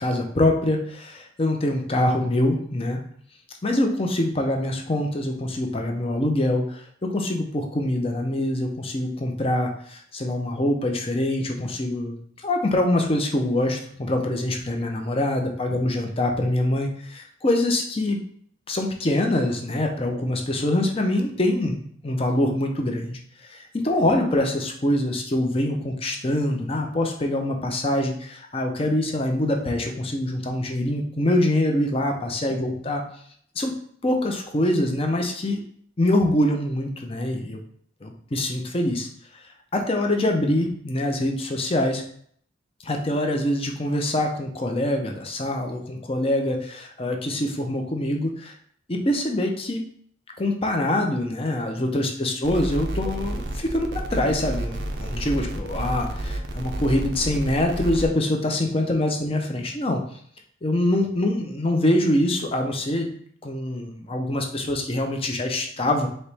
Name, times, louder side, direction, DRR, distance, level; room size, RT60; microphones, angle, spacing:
voice 1, 0.0-3.0 3.6-12.2 12.4-18.2 18.7-23.2 23.5-33.0 33.6-33.7 34.0-35.6 36.0-37.6 38.0-39.1 39.7-42.0 42.8-48.5 48.9-49.8 50.4-60.0 60.6-63.1 63.4-66.1, left 1 dB, 30° left, 3 dB, 0.6 m, -24 dB
sound 1, 52.4-58.1, right 1 dB, 60° right, 0.6 m, -30 dB
4.1 x 3.0 x 3.3 m, 0.62 s
head